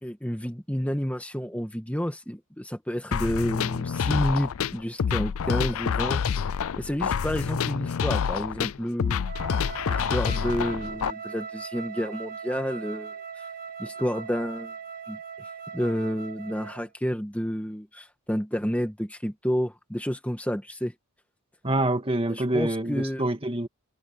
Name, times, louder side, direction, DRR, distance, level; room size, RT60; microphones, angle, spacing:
voice 1, 0.0-6.2 6.8-9.3 9.9-13.1 13.8-14.7 15.1-15.2 15.7-20.9 22.3-23.2, equal, 5° left, 1.7 m, -30 dB
sound 1, 3.1-11.1, left 7 dB, 65° left, 0.4 m, -27 dB
Wind instrument woodwind instrument, 9.2-16.9, right 6 dB, 40° right, 1.8 m, -39 dB
voice 2, 21.6-23.7, right 1 dB, 25° right, 2.0 m, -26 dB
head